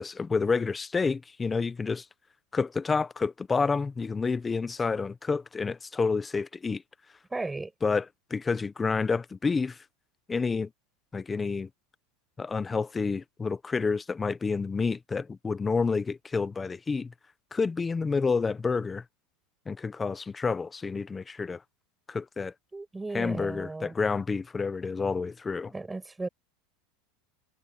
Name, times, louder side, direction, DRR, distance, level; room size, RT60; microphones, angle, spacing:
voice 1, 0.0-2.0 2.5-6.8 7.8-8.1 8.3-9.8 10.3-10.7 11.1-11.7 12.4-17.1 17.5-19.0 19.7-21.6 22.1-22.5 23.1-25.7, left 4 dB, 15° left, 0.7 m, -29 dB
voice 2, 7.3-7.7 22.7-23.9 25.7-26.3, right 3 dB, 10° right, 5.8 m, -35 dB
supercardioid pair, 150°, 0 cm